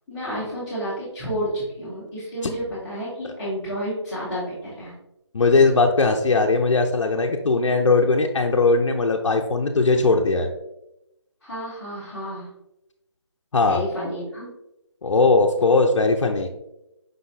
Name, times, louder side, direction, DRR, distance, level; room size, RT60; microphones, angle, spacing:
voice 1, 0.1-4.9 11.4-12.5 13.6-14.5, equal, ahead, -20 dB, 0.9 m, -30 dB
voice 2, 5.3-10.5 13.5-13.8 15.0-16.5, left 3 dB, 85° left, 2 dB, 0.6 m, -19 dB
5.3 x 3.7 x 2.7 m, 0.88 s
figure-of-eight pair, 175°, 15 cm